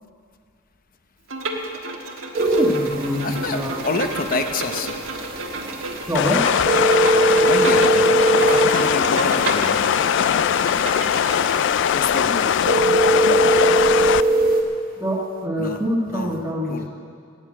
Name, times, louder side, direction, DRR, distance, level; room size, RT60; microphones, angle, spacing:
Bowed string instrument, 1.3-11.8, right 2 dB, 80° right, 1.4 m, -31 dB
voice 1, 2.4-3.8 6.1-6.4 15.0-16.9, equal, 15° right, -4 dB, 1.4 m, -25 dB
sound 1, 2.4-14.6, right 2 dB, 50° right, 1.6 m, -22 dB
voice 2, 3.2-5.0 7.4-8.0 8.5-9.8 11.9-12.5 15.6-15.8 16.1-16.4 16.7-16.9, left 3 dB, 45° left, 7 dB, 0.8 m, -27 dB
sound 2, 6.1-14.2, left 9 dB, 65° left, 0.3 m, -20 dB
13.5 x 9.0 x 8.5 m, 2.2 s
head